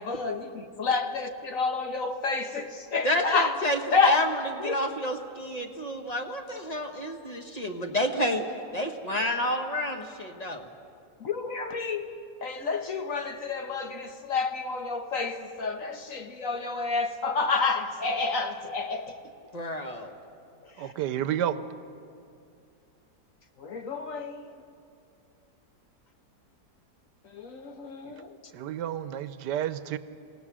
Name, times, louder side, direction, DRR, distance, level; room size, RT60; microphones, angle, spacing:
voice 1, 0.0-3.6 3.9-4.2 4.6-4.7 11.2-12.1 12.4-19.1 20.8-20.9 23.6-24.4 27.2-28.4, left 4 dB, 55° left, 1.4 m, -29 dB
voice 2, 3.0-8.4 8.7-10.7 19.5-20.1, left 1 dB, 25° left, 1.4 m, -29 dB
voice 3, 20.8-21.6 28.0-28.1 28.5-30.0, right 10 dB, 85° right, 1.4 m, -30 dB
27.5 x 18.0 x 6.2 m
omnidirectional pair, 1.8 m